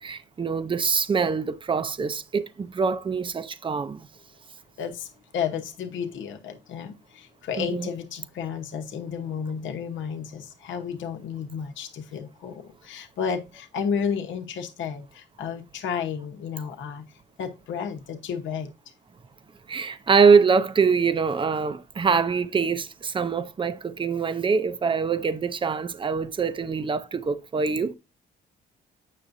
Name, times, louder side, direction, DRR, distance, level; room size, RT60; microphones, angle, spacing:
voice 1, 0.0-4.1 7.6-7.9 19.7-27.9, right 5 dB, 25° right, 0.6 m, -24 dB
voice 2, 4.8-17.1 17.4-18.7, left 7 dB, 75° left, 1.0 m, -32 dB
8.3 x 5.8 x 2.6 m
cardioid pair, 90°, 20 cm